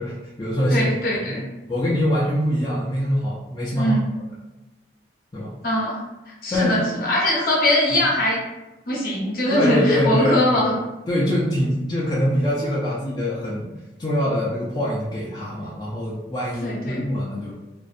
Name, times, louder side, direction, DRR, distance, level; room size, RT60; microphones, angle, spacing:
voice 1, 0.0-1.4 1.7-4.0 5.3-5.5 6.5-6.8 9.5-10.8 11.1-13.7 14.0-17.5, equal, 25° left, -7 dB, 0.3 m, -24 dB
voice 2, 0.7-1.4 3.7-4.0 5.6-6.0 6.4-8.4 8.9-10.7 16.6-17.0, left 1 dB, 55° left, -4 dB, 0.7 m, -21 dB
2.5 x 2.1 x 2.3 m, 1.0 s
head